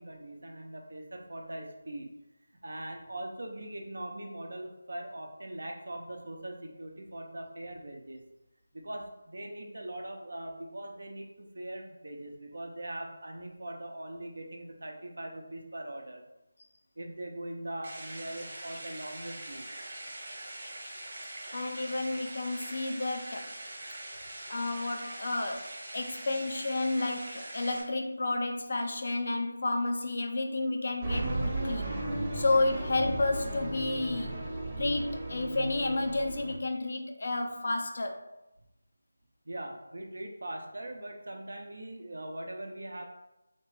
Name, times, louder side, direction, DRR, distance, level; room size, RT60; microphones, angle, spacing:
voice 1, 0.0-2.1 2.6-8.2 8.7-16.2 17.0-19.7 39.5-43.1, right 1 dB, 70° right, 2 dB, 0.7 m, -41 dB
sound 1, 17.8-27.8, right 1 dB, 40° right, 1.1 m, -43 dB
voice 2, 21.5-23.6 24.5-31.9 32.3-34.4 34.8-38.3, left 2 dB, 55° left, 4 dB, 0.5 m, -31 dB
sound 2, 31.0-36.5, right 1 dB, 20° right, 0.8 m, -35 dB
3.3 x 2.9 x 3.3 m, 0.93 s
figure-of-eight pair, 165°, 0 cm